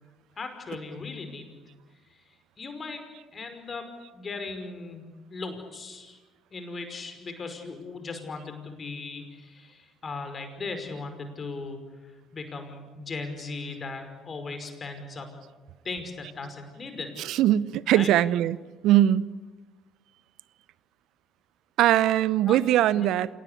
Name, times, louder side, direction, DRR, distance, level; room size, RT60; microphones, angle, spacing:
voice 1, 0.4-1.6 2.1-2.2 2.6-3.0 3.3-3.9 4.1-6.2 6.5-15.3 15.8-17.1 17.9-18.1 22.5-22.6 22.9-23.1, left 3 dB, 40° left, 7 dB, 5.5 m, -38 dB
voice 2, 17.2-18.6 18.8-19.2 21.8-23.3, right 12 dB, 65° right, 20 dB, 0.8 m, -21 dB
27.5 x 19.0 x 10.0 m, 1.2 s
hypercardioid pair, 55°, 0 cm